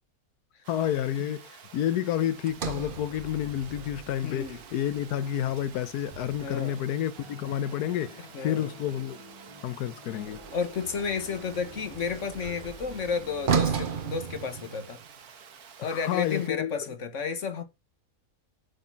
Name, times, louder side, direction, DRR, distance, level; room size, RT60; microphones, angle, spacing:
Water, 0.6-16.5, right 7 dB, 75° right, 1.6 m, -51 dB
voice 1, 0.7-9.2 9.6-10.4 15.8-16.8, left 11 dB, 90° left, 1.3 m, -30 dB
Sliding door, 2.5-6.7 10.2-15.1, right 6 dB, 40° right, 0.9 m, -35 dB
voice 2, 4.2-4.6 6.4-6.8 8.3-8.7 10.5-15.0 15.8-17.6, left 5 dB, 50° left, 1.6 m, -32 dB
sound 1, 7.1-13.9, right 1 dB, 20° right, 1.7 m, -50 dB
7.9 x 5.3 x 5.6 m
omnidirectional pair, 1.6 m